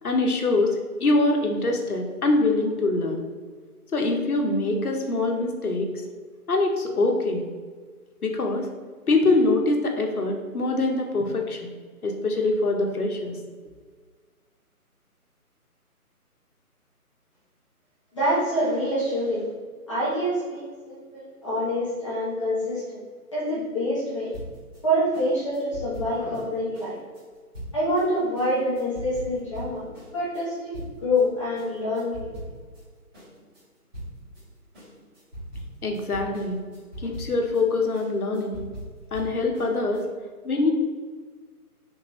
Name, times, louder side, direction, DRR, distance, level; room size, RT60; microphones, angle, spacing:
voice 1, 0.0-3.2 3.9-5.9 6.5-7.4 8.2-8.7 9.1-11.7 12.0-13.4 35.8-36.6 37.0-38.6 39.1-40.0 40.4-40.7, left 2 dB, 70° left, 2 dB, 0.9 m, -24 dB
voice 2, 18.1-19.5 19.9-23.0 23.3-24.3 24.8-27.0 27.7-32.3, equal, 20° left, -10 dB, 1.0 m, -26 dB
sound 1, 24.3-31.3 31.6-32.9 33.1-40.0, equal, 15° right, 1.3 m, -41 dB
3.8 x 3.4 x 3.0 m, 1.6 s
figure-of-eight pair, 155°, 46 cm